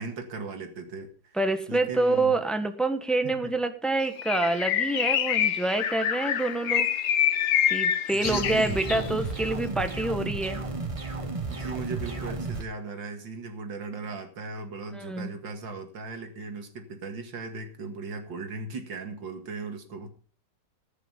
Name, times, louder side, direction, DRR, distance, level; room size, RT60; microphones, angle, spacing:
voice 1, 0.0-1.3 1.7-2.5 3.2-3.5 8.1-9.1 11.5-20.1, right 4 dB, 80° right, 5 dB, 2.7 m, -37 dB
voice 2, 1.3-6.9 7.7-10.6 14.9-15.3, right 2 dB, ahead, 8 dB, 1.0 m, -27 dB
Bird, 4.2-9.1, left 9 dB, 65° left, 1.2 m, -26 dB
sound 1, 8.2-12.6, right 3 dB, 25° right, 0.9 m, -33 dB
20.0 x 6.7 x 5.3 m, 0.41 s
omnidirectional pair, 2.0 m